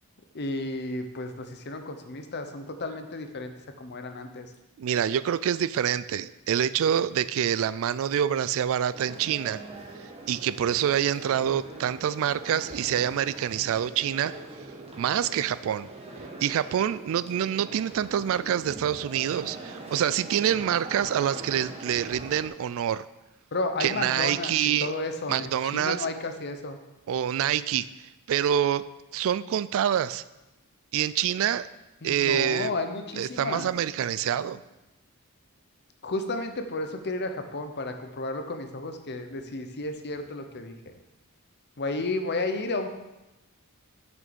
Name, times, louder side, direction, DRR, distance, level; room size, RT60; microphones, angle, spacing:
voice 1, 0.3-3.5 3.8-4.5 23.5-26.8 32.0-33.7 36.0-40.7 41.8-42.9, left 2 dB, 50° left, 7 dB, 0.8 m, -32 dB
voice 2, 4.8-9.6 10.3-14.3 15.0-15.9 16.4-23.1 23.8-24.9 25.3-26.1 27.1-27.9 28.3-28.8 29.1-30.2 30.9-31.7 32.0-32.7 33.2-34.6, right 9 dB, 65° right, 16 dB, 0.3 m, -26 dB
sound 1, 8.9-22.5, right 2 dB, 25° right, 1.4 m, -42 dB
6.2 x 6.2 x 6.9 m, 1.0 s
head